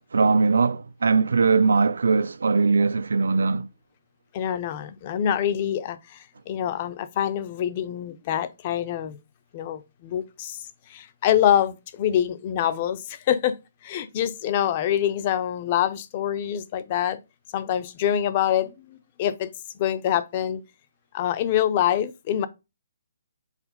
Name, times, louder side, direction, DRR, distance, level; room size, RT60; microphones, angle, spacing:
voice 1, 0.1-3.7, right 4 dB, 85° right, 0.4 m, -20 dB
voice 2, 4.3-9.2 9.5-10.6 10.9-13.6 13.8-17.2 17.5-19.5 19.8-20.6 21.1-22.5, left 10 dB, 20° left, 0.5 m, -25 dB
4.9 x 3.9 x 5.1 m
hypercardioid pair, 180°, 0 cm